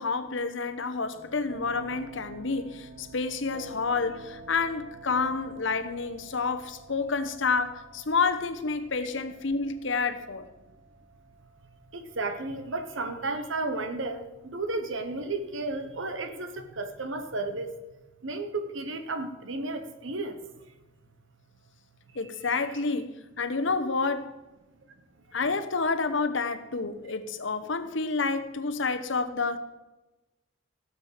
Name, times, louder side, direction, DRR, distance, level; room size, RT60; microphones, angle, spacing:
voice 1, 0.0-10.5 22.1-24.3 25.3-29.6, left 4 dB, 65° left, 1.0 m, -29 dB
sound 1, 1.1-17.6, right 2 dB, 35° right, 2.1 m, -50 dB
voice 2, 11.9-17.7 18.2-20.4, right 2 dB, 70° right, 1.2 m, -33 dB
17.0 x 7.5 x 5.0 m
head